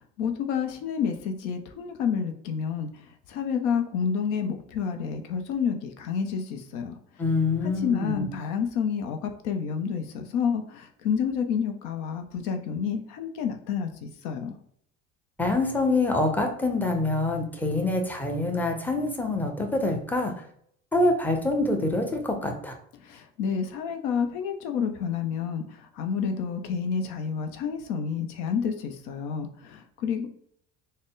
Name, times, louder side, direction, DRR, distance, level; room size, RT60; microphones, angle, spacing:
voice 1, 0.2-2.9 3.3-6.9 7.6-14.5 23.0-30.3, left 6 dB, 80° left, 6 dB, 0.6 m, -29 dB
voice 2, 7.2-8.3 15.4-20.3 20.9-22.7, left 2 dB, 5° left, 3 dB, 0.7 m, -25 dB
3.8 x 2.1 x 3.6 m, 0.66 s
supercardioid pair, 100°, 29 cm